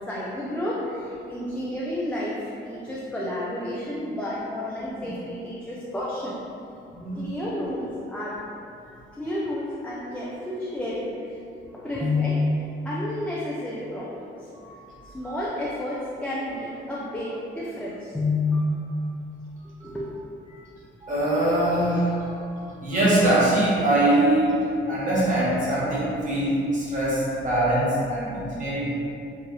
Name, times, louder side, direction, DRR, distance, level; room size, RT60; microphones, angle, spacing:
voice 1, 0.0-6.4 7.2-8.4 9.2-11.4 11.7-14.5 15.0-19.0 19.8-20.1, left 1 dB, 5° left, -7 dB, 0.4 m, -30 dB
voice 2, 6.9-7.3 14.5-14.7 15.2-15.3 19.8-19.9 21.0-22.4 22.8-28.9, right 1 dB, 40° right, -9 dB, 1.3 m, -23 dB
4.6 x 2.5 x 2.9 m, 2.7 s
cardioid pair, 120°, 21 cm